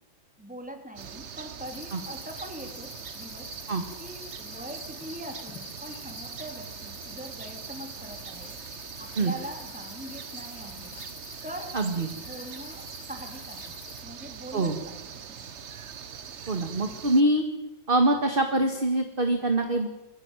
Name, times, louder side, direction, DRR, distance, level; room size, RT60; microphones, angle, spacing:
voice 1, 0.4-3.5 4.0-8.6 9.0-11.0 11.4-11.8 12.1-13.7 14.0-15.6, right 1 dB, 5° right, 3 dB, 3.1 m, -42 dB
sound 1, 1.0-17.2, right 7 dB, 45° right, 1.0 m, -42 dB
sound 2, 1.6-14.0, left 6 dB, 80° left, 3.0 m, -47 dB
voice 2, 11.7-12.1 14.5-14.7 16.5-17.5 17.9-19.9, right 1 dB, 30° right, 4 dB, 1.9 m, -24 dB
23.0 x 15.5 x 9.1 m, 0.94 s
omnidirectional pair, 2.2 m